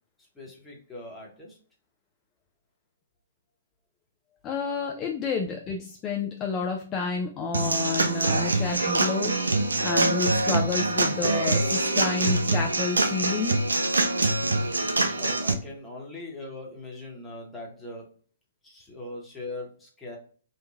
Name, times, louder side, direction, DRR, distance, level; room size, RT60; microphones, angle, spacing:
voice 1, 0.2-1.6 15.2-18.1 18.6-20.2, left 2 dB, 10° left, -3 dB, 1.0 m, -40 dB
voice 2, 4.4-9.4 9.8-13.6, left 4 dB, 25° left, 2 dB, 0.3 m, -30 dB
Human voice / Acoustic guitar / Drum, 7.5-15.5, right 2 dB, 80° right, 0.4 m, -24 dB
3.0 x 2.2 x 2.3 m, 0.43 s
figure-of-eight pair, 120°, 0 cm